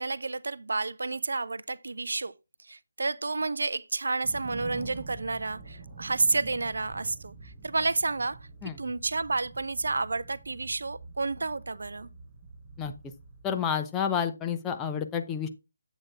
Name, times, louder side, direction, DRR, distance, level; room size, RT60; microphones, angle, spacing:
voice 1, 0.0-2.3 2.7-8.4 8.8-12.1, right 3 dB, 60° right, 0.4 m, -30 dB
sound 1, 4.2-13.6, right 4 dB, 25° right, 4.0 m, -46 dB
voice 2, 13.4-15.5, left 7 dB, 10° left, 0.6 m, -29 dB
8.6 x 8.1 x 2.4 m
figure-of-eight pair, 150°, 0 cm